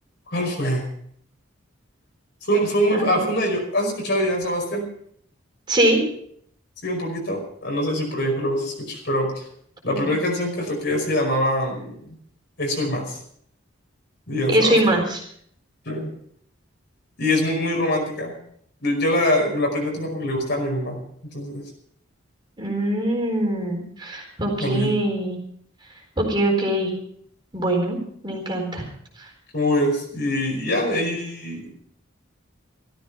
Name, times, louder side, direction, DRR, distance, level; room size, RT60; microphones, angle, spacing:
voice 1, 0.3-0.9 2.4-4.9 6.8-9.5 9.8-11.9 12.6-13.2 14.3-15.1 15.9-16.1 17.2-18.4 18.8-21.0 21.3-21.6 24.6-24.9 29.5-31.7, equal, 55° left, 1 dB, 5.3 m, -24 dB
voice 2, 2.9-3.3 5.7-6.0 9.9-10.1 14.5-15.2 22.6-25.4 26.2-26.9 27.5-28.0 28.2-28.8, right 1 dB, 20° right, 0 dB, 4.1 m, -22 dB
16.0 x 13.5 x 5.7 m, 0.65 s
head